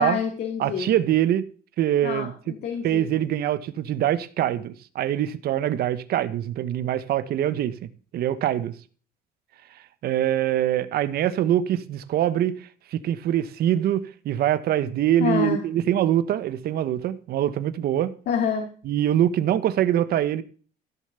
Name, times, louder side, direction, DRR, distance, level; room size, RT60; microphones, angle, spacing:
voice 1, 0.0-0.9 2.0-3.0 15.2-15.6 18.3-18.7, left 7 dB, 65° left, 3.0 m, -27 dB
voice 2, 0.6-1.5 1.8-2.5 2.8-8.7 9.7-18.1 18.8-20.4, right 11 dB, 65° right, 1.2 m, -24 dB
15.0 x 6.7 x 6.9 m
cardioid pair, 110°, 17 cm